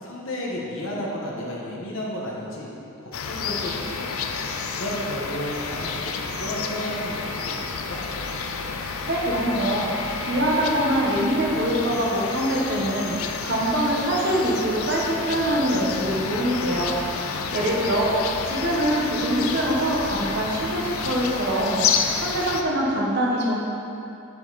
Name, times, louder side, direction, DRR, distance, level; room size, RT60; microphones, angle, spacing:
voice 1, 0.0-2.7 3.0-4.1 4.7-8.0 17.2-17.7, equal, 65° left, -3 dB, 1.4 m, -33 dB
sound 1, 3.1-22.6, left 5 dB, 85° left, 0.5 m, -30 dB
voice 2, 9.1-16.9 17.2-18.1 18.4-23.6, right 1 dB, 55° right, -3 dB, 1.3 m, -24 dB
7.5 x 6.8 x 4.1 m, 2.9 s
head